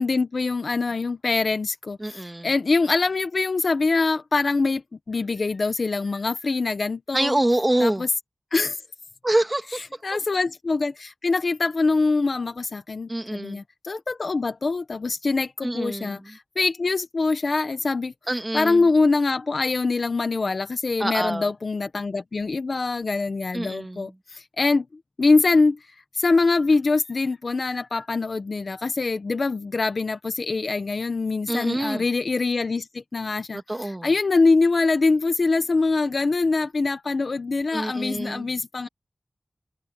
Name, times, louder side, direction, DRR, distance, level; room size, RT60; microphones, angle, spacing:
voice 1, 0.0-4.8 5.1-7.4 7.8-8.1 8.5-8.8 10.0-18.1 18.5-24.9 25.2-25.8 26.1-38.9, left 3 dB, 75° left, 1.1 m, -24 dB
voice 2, 2.0-2.5 7.1-8.1 9.2-9.9 13.1-13.6 15.6-16.4 18.3-18.9 21.0-21.5 23.5-24.1 31.5-32.1 33.5-34.1 37.7-38.5, right 1 dB, 25° right, 2.0 m, -26 dB
wide cardioid pair, 55°, 0 cm